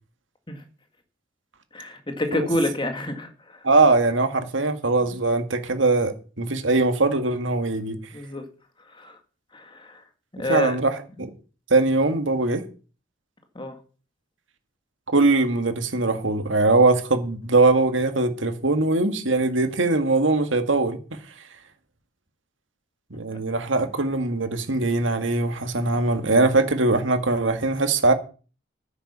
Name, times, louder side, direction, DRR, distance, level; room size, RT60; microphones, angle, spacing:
voice 1, 1.7-3.6 8.1-8.4 8.9-9.2 9.5-10.0 10.3-10.8 13.6-13.8, left 1 dB, 25° left, 1.9 m, -28 dB
voice 2, 3.6-8.0 10.5-11.3 11.7-12.6 15.1-21.0 23.1-28.1, right 3 dB, 75° right, 2.0 m, -21 dB
10.5 x 8.1 x 6.9 m
head